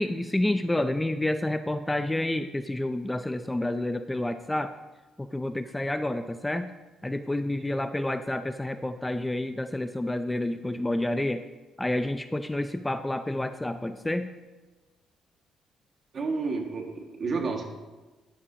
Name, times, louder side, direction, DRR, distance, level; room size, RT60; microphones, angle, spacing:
voice 1, 0.0-4.7 5.2-6.7 7.0-11.4 11.8-14.3, left 1 dB, 10° left, 9 dB, 0.5 m, -29 dB
voice 2, 7.6-8.0 16.1-17.7, right 4 dB, 45° right, 2 dB, 1.9 m, -31 dB
12.0 x 11.0 x 2.9 m, 1.2 s
cardioid pair, 85°, 0 cm